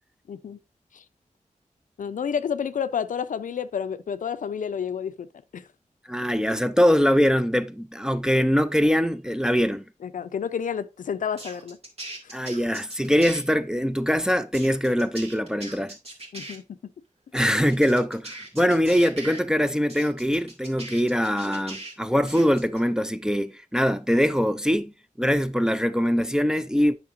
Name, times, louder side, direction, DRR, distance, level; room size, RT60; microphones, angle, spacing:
voice 1, 0.3-0.6 0.9-1.0 2.0-5.3 5.5-5.6 10.0-11.8 12.2-12.3 16.3-16.6, left 7 dB, 85° left, 0.5 m, -30 dB
voice 2, 6.1-9.8 12.3-15.9 17.3-24.9 25.2-26.9, equal, 5° right, 0.4 m, -23 dB
sound 1, 11.4-13.4 14.5-16.6 17.4-19.4 19.9-21.9 22.3-22.8, right 2 dB, 50° right, 2.1 m, -40 dB
8.7 x 5.7 x 2.6 m
wide cardioid pair, 110°, 13 cm